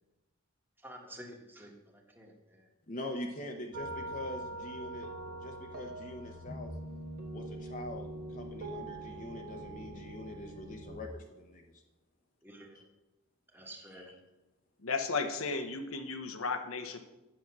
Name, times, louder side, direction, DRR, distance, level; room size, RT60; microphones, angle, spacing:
voice 1, 0.8-2.6 5.2-5.4 10.3-10.6 12.4-12.8 13.5-14.2, right 1 dB, 10° right, 1 dB, 1.5 m, -51 dB
voice 2, 2.9-5.1 5.4-6.7 7.3-11.6 13.9-14.1, left 1 dB, 40° left, 1 dB, 0.9 m, -43 dB
sound 1, 3.7-10.9, right 1 dB, 45° right, 1.4 m, -43 dB
voice 3, 14.8-17.0, left 4 dB, 80° left, 7 dB, 1.1 m, -34 dB
9.1 x 7.2 x 6.1 m, 1.0 s
head